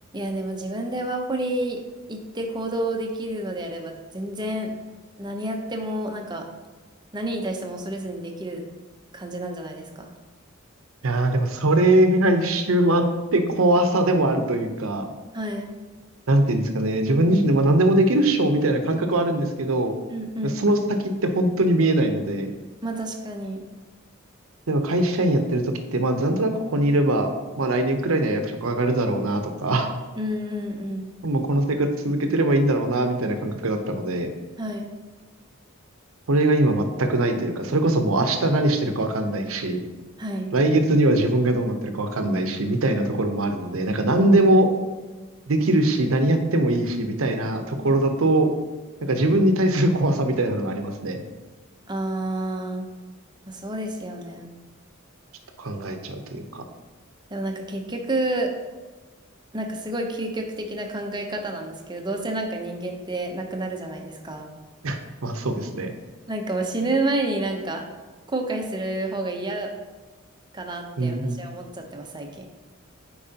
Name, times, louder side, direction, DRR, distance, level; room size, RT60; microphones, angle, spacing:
voice 1, 0.1-1.8 2.1-6.4 7.1-8.6 9.1-10.1 15.3-15.7 20.1-20.6 22.8-23.7 30.2-31.1 34.6-34.9 40.2-40.5 51.9-52.9 53.5-54.5 57.3-58.5 59.5-64.5 66.3-67.8 68.3-69.7 70.5-72.5, right 1 dB, 20° right, 3 dB, 0.7 m, -29 dB
voice 2, 11.0-13.0 13.3-15.1 16.3-19.9 20.4-20.8 21.0-22.5 24.7-27.3 27.6-29.9 31.2-34.3 36.3-39.8 40.5-44.7 45.5-48.5 49.0-51.2 55.6-56.6 64.8-65.9 71.0-71.4, right 1 dB, 75° right, 6 dB, 0.7 m, -21 dB
8.6 x 4.7 x 2.8 m, 1.3 s
head